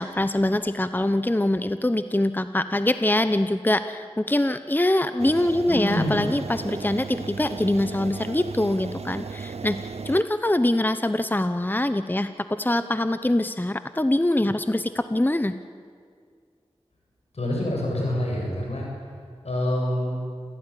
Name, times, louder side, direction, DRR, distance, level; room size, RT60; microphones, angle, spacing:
voice 1, 0.0-15.5, left 1 dB, 20° left, 11 dB, 0.9 m, -24 dB
sound 1, 5.2-10.2, right 5 dB, 80° right, 0.6 m, -36 dB
voice 2, 5.7-6.2 17.3-18.9 19.4-20.1, left 1 dB, 85° left, -1 dB, 7.9 m, -26 dB
27.5 x 16.0 x 10.0 m, 2.1 s
wide cardioid pair, 40°, 11 cm